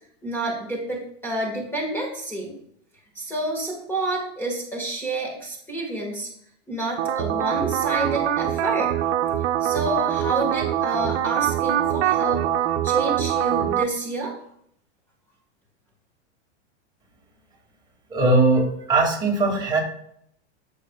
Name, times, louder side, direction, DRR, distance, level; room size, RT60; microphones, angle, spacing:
voice 1, 0.2-2.6 3.1-6.3 6.7-8.9 9.6-12.5 12.8-14.3, right 2 dB, 5° left, -2 dB, 1.8 m, -29 dB
sound 1, 7.0-13.8, right 11 dB, 70° right, 0.8 m, -23 dB
voice 2, 18.1-19.8, right 3 dB, 10° right, -3 dB, 2.3 m, -20 dB
15.0 x 5.5 x 2.4 m, 0.69 s
supercardioid pair, 135°, 35 cm